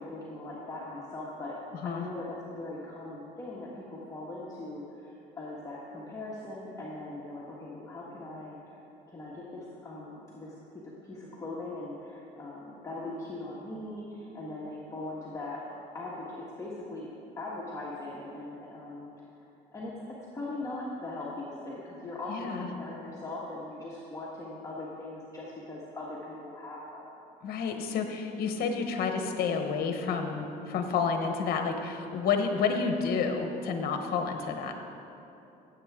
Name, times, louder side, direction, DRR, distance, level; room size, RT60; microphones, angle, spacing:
voice 1, 0.0-1.5 1.8-8.8 9.1-10.5 10.8-15.6 15.9-19.1 19.7-19.9 20.3-27.1 32.5-32.6, left 2 dB, 20° left, -6 dB, 1.5 m, -40 dB
voice 2, 22.3-22.7 27.4-34.7, left 5 dB, 65° left, 5 dB, 1.0 m, -30 dB
16.0 x 8.0 x 3.6 m, 2.9 s
cardioid pair, 110°, 17 cm